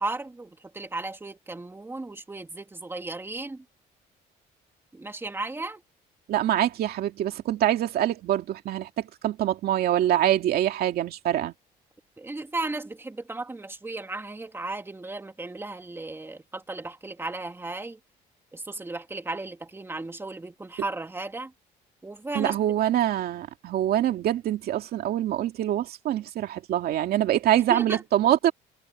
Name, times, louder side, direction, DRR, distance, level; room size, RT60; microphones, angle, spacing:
voice 1, 0.0-3.6 4.9-5.8 12.2-18.0 18.5-21.5 22.0-22.6 27.7-28.0, right 2 dB, 15° right, 2.8 m, -35 dB
voice 2, 6.3-11.5 22.3-28.5, right 12 dB, 65° right, 2.3 m, -25 dB
cardioid pair, 110°, 17 cm